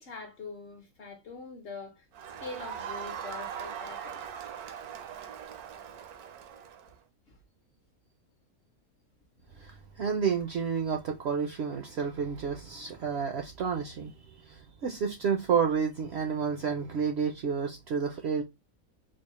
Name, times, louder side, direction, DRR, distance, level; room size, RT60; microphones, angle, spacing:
voice 1, 0.0-2.1 2.4-4.5 7.3-7.4, left 3 dB, 55° left, 0.7 m, -43 dB
Crowd, 2.1-6.9, right 8 dB, 85° right, 1.1 m, -40 dB
voice 2, 9.6-18.4, right 6 dB, 65° right, 0.6 m, -30 dB
4.2 x 2.0 x 3.0 m
omnidirectional pair, 1.5 m